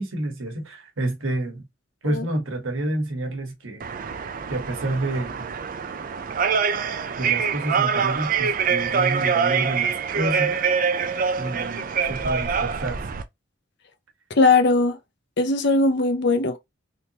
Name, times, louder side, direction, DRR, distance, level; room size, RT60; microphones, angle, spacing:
voice 1, 0.0-1.7 2.0-3.8 4.5-5.5 7.2-10.6 11.4-13.0, right 2 dB, 75° right, 1.2 m, -29 dB
sound 1, 3.8-13.2, right 6 dB, 40° right, 0.4 m, -25 dB
voice 2, 14.3-15.0 15.4-16.6, left 3 dB, 55° left, 0.7 m, -19 dB
3.6 x 2.8 x 2.8 m
head